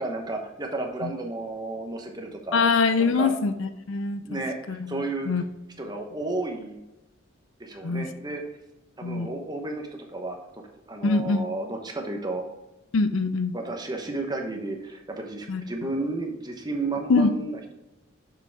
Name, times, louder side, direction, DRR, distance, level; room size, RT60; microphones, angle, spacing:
voice 1, 0.0-2.6 3.0-3.3 4.2-5.3 5.8-6.8 7.6-8.4 9.0-10.4 10.9-12.4 13.5-17.7, right 2 dB, 20° right, 2 dB, 1.0 m, -32 dB
voice 2, 2.5-4.4 4.7-5.4 7.8-8.1 9.0-9.3 11.0-11.5 12.9-13.5 15.5-15.6 17.1-17.3, left 4 dB, 65° left, 11 dB, 0.5 m, -24 dB
6.9 x 5.9 x 3.6 m, 0.94 s
head